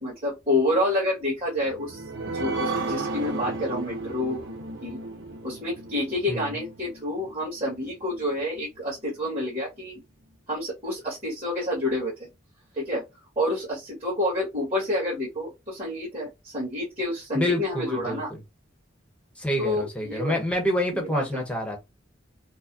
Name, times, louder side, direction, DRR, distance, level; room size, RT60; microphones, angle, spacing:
voice 1, 0.0-2.0 2.3-4.4 4.8-5.0 5.4-10.0 10.5-12.3 12.7-13.0 13.4-18.3 19.6-20.3 20.9-21.4, left 1 dB, 35° right, 1.7 m, -28 dB
sound 1, 1.5-8.6 9.1-9.2 9.5-9.6, right 3 dB, 85° right, 0.9 m, -34 dB
voice 2, 17.3-18.2 19.4-21.8, equal, 5° left, 0.9 m, -27 dB
4.5 x 2.2 x 2.7 m
head